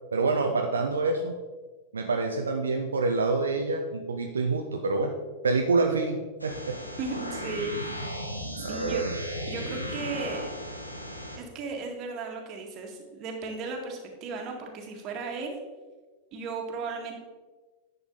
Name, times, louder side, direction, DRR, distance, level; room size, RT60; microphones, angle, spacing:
voice 1, 0.1-1.4 1.9-5.1 5.4-6.7 8.6-9.1, right 3 dB, 70° right, 3 dB, 0.7 m, -27 dB
sound 1, 6.4-11.4, equal, 90° left, 1.4 m, -36 dB
voice 2, 7.0-8.1 8.5-9.1 9.5-10.5 11.4-15.6 16.3-17.1, right 3 dB, 35° right, 2 dB, 1.9 m, -36 dB
10.5 x 6.9 x 4.0 m, 1.3 s
figure-of-eight pair, 90°, 0 cm